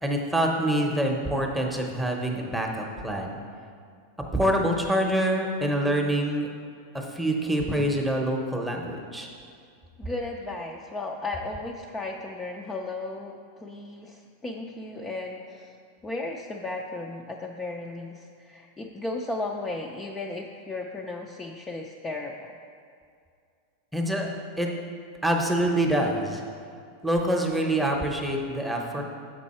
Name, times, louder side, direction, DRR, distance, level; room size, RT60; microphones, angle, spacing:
voice 1, 0.0-3.4 4.3-6.5 6.9-9.3 23.9-24.3 24.6-24.7 25.2-26.4 27.0-29.0, right 1 dB, 5° right, 1 dB, 0.8 m, -26 dB
voice 2, 10.0-15.7 16.0-22.5, left 2 dB, 15° left, 0 dB, 0.4 m, -35 dB
7.1 x 5.4 x 4.2 m, 2.3 s
supercardioid pair, 140°, 0 cm